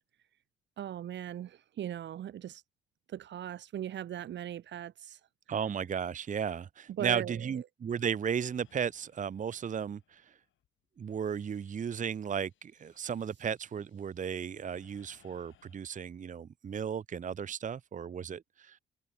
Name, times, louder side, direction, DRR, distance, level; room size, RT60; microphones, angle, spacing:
voice 1, 0.8-2.6 3.1-5.2 6.9-7.6, right 11 dB, 65° right, 1.4 m, -39 dB
voice 2, 5.5-10.2 11.0-18.8, right 7 dB, 40° right, 0.9 m, -35 dB
sound 1, 8.0-15.8, left 11 dB, 75° left, 6.1 m, -68 dB
cardioid pair, 90°, 20 cm